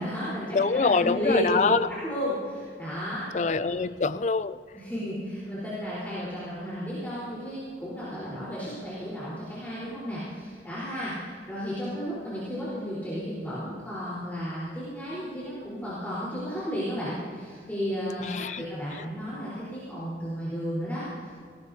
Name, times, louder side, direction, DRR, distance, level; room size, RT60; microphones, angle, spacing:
voice 1, 0.0-3.3 4.7-21.3, equal, 10° left, -11 dB, 4.1 m, -33 dB
voice 2, 0.5-1.9 3.3-4.6 18.2-18.7 19.0-19.1, left 4 dB, 40° left, 14 dB, 0.4 m, -25 dB
19.0 x 18.0 x 2.8 m, 2.1 s
head